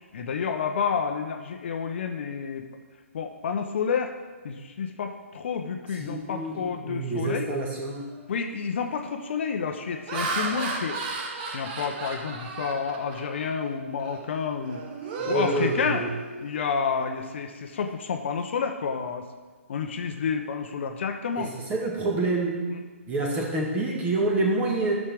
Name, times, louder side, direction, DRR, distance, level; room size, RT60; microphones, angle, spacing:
voice 1, 0.1-2.7 3.1-4.1 4.4-7.5 8.3-11.0 11.5-14.8 15.3-16.0 16.4-19.3 19.7-21.5 22.7-22.8, left 6 dB, 55° left, 5 dB, 0.8 m, -30 dB
voice 2, 6.0-8.0 15.2-16.1 21.4-22.7 23.1-24.9, right 2 dB, 20° right, -1 dB, 1.7 m, -27 dB
Laughter, 8.0-8.3 8.8-9.1 9.7-13.6 14.0-14.2 14.6-16.6, right 3 dB, 40° right, 1.1 m, -34 dB
13.0 x 6.4 x 3.5 m, 1.4 s
figure-of-eight pair, 135°, 8 cm